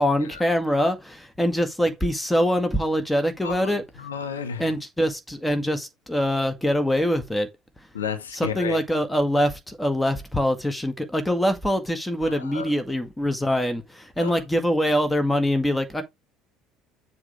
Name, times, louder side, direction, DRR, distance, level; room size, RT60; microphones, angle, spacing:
voice 1, 0.0-3.8 4.6-7.5 8.3-16.0, equal, 10° left, 2.0 m, -24 dB
voice 2, 3.4-4.7 7.9-8.8 12.2-12.7 14.2-14.4, left 7 dB, 80° left, 1.1 m, -33 dB
7.2 x 4.7 x 4.8 m
figure-of-eight pair, 60°, 0 cm